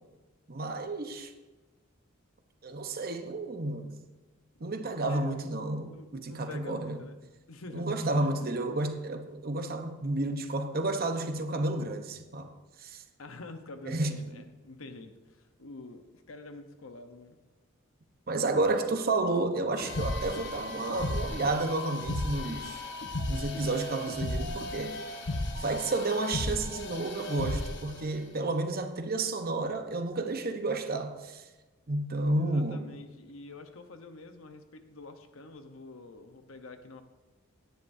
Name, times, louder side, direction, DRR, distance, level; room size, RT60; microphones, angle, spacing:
voice 1, 0.5-1.3 2.6-4.0 4.6-7.0 7.7-12.5 12.8-13.0 13.9-14.2 18.3-22.8 23.3-25.0 25.5-31.4 31.9-32.9, right 2 dB, 45° right, 0.9 m, -31 dB
voice 2, 5.1-5.5 5.9-7.2 7.5-8.5 13.2-17.4 32.3-37.0, left 2 dB, 80° left, 0.9 m, -47 dB
sound 1, 19.8-28.0, left 1 dB, 60° left, 1.1 m, -35 dB
17.0 x 10.5 x 2.7 m
head